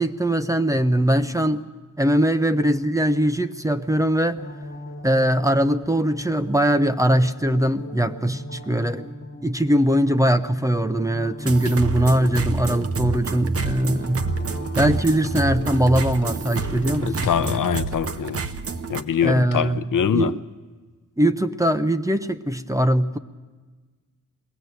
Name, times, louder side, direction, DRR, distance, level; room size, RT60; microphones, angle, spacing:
voice 1, 0.0-1.6 2.0-4.4 5.0-9.1 9.4-14.3 14.8-17.3 19.2-19.8 20.1-20.4 21.2-23.2, right 1 dB, 10° right, 0.6 m, -21 dB
sound 1, 4.3-17.5, left 1 dB, 35° left, 2.7 m, -39 dB
sound 2, 11.4-19.0, right 4 dB, 45° right, 0.9 m, -28 dB
voice 2, 17.1-18.5 18.9-20.3, left 8 dB, 70° left, 0.7 m, -23 dB
21.5 x 18.0 x 8.0 m
wide cardioid pair, 135°, 34 cm